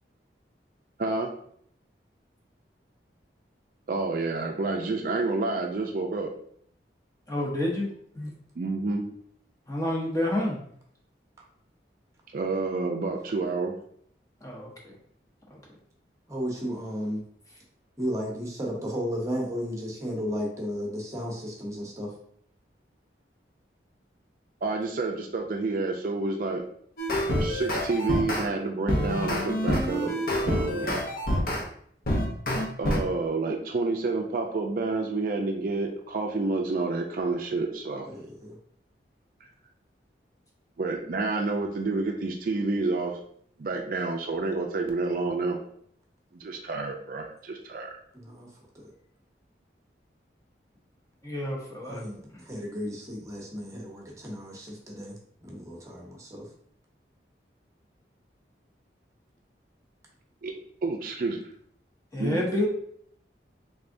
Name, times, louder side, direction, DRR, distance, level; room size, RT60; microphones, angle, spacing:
voice 1, 1.0-1.3 3.9-6.3 8.6-9.0 12.3-13.7 24.6-26.6 27.4-30.1 30.4-31.0 32.8-38.1 40.8-43.2 43.6-45.6 46.4-47.9 60.4-60.5 60.8-61.4 62.2-62.4, right 3 dB, 50° right, 2 dB, 0.4 m, -29 dB
voice 2, 7.3-7.9 8.2-8.3 9.7-10.6 14.4-14.9 15.5-15.6 30.8-31.0 51.2-52.0 62.1-62.7, left 1 dB, 20° left, -3 dB, 0.8 m, -29 dB
voice 3, 16.3-17.2 18.0-22.1 29.6-30.5 38.0-38.6 48.1-48.5 51.8-56.5, equal, 15° right, -2 dB, 0.8 m, -34 dB
sound 1, 27.0-28.5 28.9-31.6 32.1-33.0, equal, 50° left, 0.7 m, -27 dB
3.5 x 3.3 x 2.5 m, 0.65 s
head